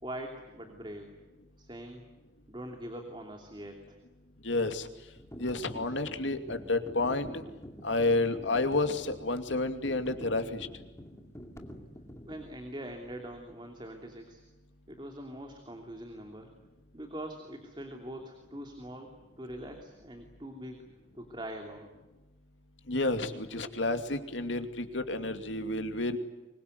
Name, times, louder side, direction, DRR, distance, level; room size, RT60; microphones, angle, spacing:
voice 1, 0.0-1.1 1.6-2.0 2.5-4.0 12.2-14.4 14.9-16.5 16.9-20.8 21.1-21.9, right 1 dB, 25° right, 3 dB, 2.9 m, -43 dB
voice 2, 4.4-4.9 5.4-7.4 7.8-10.7 22.9-26.2, left 2 dB, 90° left, 7 dB, 2.6 m, -30 dB
sound 1, 5.2-12.5, equal, 15° left, 2.5 m, -47 dB
25.0 x 22.0 x 9.6 m, 1.1 s
head